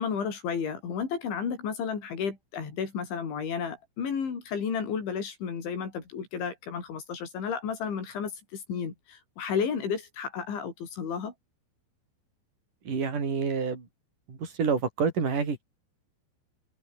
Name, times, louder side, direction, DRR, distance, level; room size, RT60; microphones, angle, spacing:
voice 1, 0.0-11.3, left 6 dB, 85° left, 7.5 m, -32 dB
voice 2, 12.8-13.9 14.3-15.6, right 5 dB, 45° right, 6.8 m, -28 dB
omnidirectional pair, 5.2 m